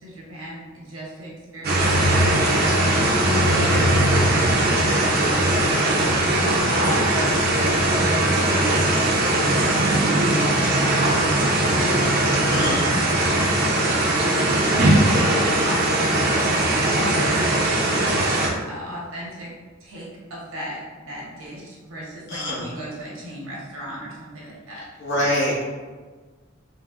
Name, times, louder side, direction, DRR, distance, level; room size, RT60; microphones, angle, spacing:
voice 1, 0.0-3.0 3.5-6.3 6.7-9.4 10.1-13.8 14.7-16.5 16.9-17.5 18.7-19.5 19.8-24.9, equal, 85° right, -5 dB, 0.9 m, -36 dB
sound 1, 1.6-18.5, right 1 dB, 50° right, 0.4 m, -20 dB
voice 2, 12.5-12.8 22.3-22.7 25.0-25.6, equal, 55° left, -5 dB, 0.9 m, -24 dB
3.4 x 2.0 x 2.3 m, 1.4 s
head